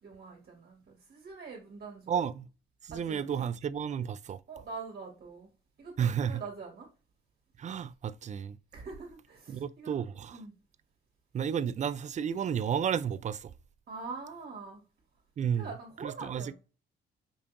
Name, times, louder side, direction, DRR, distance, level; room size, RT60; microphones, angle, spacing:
voice 1, 0.0-2.2 2.9-3.4 4.5-5.5 5.8-6.9 8.7-9.9 10.3-10.5 13.9-14.8 15.5-16.5, right 4 dB, 55° right, 1.8 m, -44 dB
voice 2, 2.1-2.5 2.8-4.4 6.0-6.4 7.6-8.6 9.5-10.4 11.3-13.5 15.4-15.7 16.0-16.5, right 8 dB, 35° right, 0.4 m, -32 dB
5.3 x 2.7 x 2.5 m
cardioid pair, 90°, 20 cm